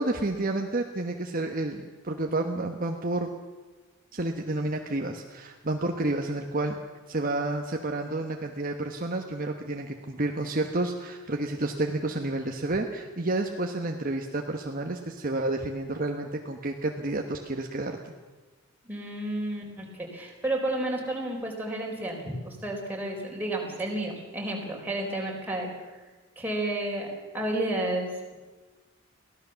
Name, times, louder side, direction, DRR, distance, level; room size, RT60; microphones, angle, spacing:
voice 1, 0.0-3.3 4.1-6.8 7.1-18.0, right 2 dB, 40° right, 3 dB, 1.2 m, -30 dB
voice 2, 18.8-25.7 26.4-28.3, right 1 dB, 10° right, -1 dB, 4.3 m, -31 dB
23.5 x 16.5 x 7.0 m, 1.3 s
head